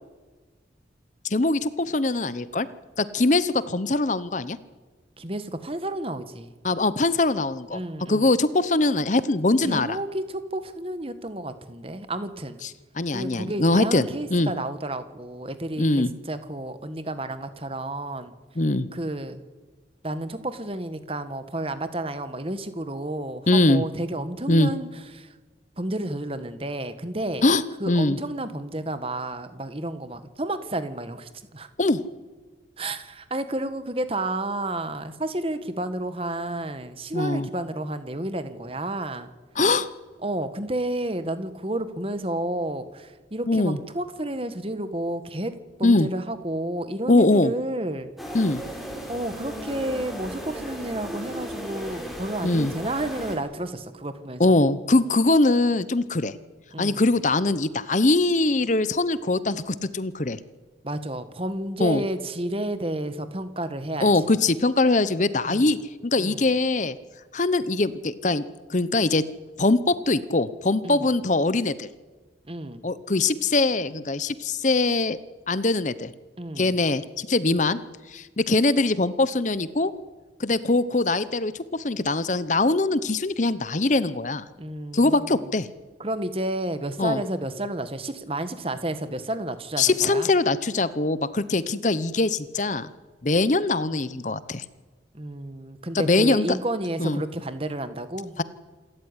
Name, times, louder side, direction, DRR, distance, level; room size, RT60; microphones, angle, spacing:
voice 1, 1.2-2.7 3.0-4.6 6.6-7.8 8.1-10.0 13.0-14.1 14.3-14.5 15.8-16.1 18.6-18.9 23.5-23.8 24.5-24.7 27.4-28.2 31.8-32.0 37.1-37.5 39.6-39.9 43.5-43.8 45.8-46.1 47.1-47.5 48.3-48.6 52.4-52.7 54.4-56.3 56.8-60.4 61.8-62.0 64.0-67.0 67.3-68.4 68.7-69.2 69.6-71.9 72.8-75.2 75.5-76.1 76.6-77.8 78.1-79.9 80.4-84.4 84.9-85.7 87.0-87.2 89.8-92.9 93.2-94.6 95.9-96.6 97.0-97.2 98.4-98.5, left 2 dB, 40° left, 15 dB, 0.8 m, -22 dB
voice 2, 5.2-6.5 7.7-8.3 9.6-12.6 13.1-18.3 18.9-19.4 20.0-24.9 25.1-25.3 25.8-27.5 27.8-31.7 32.8-39.3 40.2-45.5 45.8-48.1 49.1-54.4 56.7-57.0 60.8-64.4 65.4-65.7 66.2-66.5 70.8-71.1 72.4-72.8 76.4-76.7 84.6-85.4 86.0-90.3 95.1-98.3, right 1 dB, 30° right, 11 dB, 1.5 m, -31 dB
sound 1, 48.2-53.4, equal, ahead, 4.5 m, -36 dB
27.5 x 13.5 x 9.8 m, 1.3 s
head